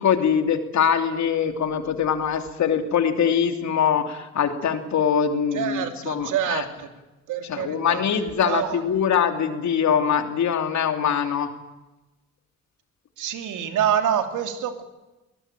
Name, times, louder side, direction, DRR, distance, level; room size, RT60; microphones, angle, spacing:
voice 1, 0.0-6.6 7.5-11.5, left 7 dB, 65° left, 6 dB, 3.1 m, -23 dB
voice 2, 5.5-6.9 7.3-8.0 8.4-8.8 13.2-14.8, right 9 dB, 85° right, 7 dB, 2.9 m, -26 dB
22.0 x 18.5 x 9.1 m, 1.0 s
cardioid pair, 90°, 30 cm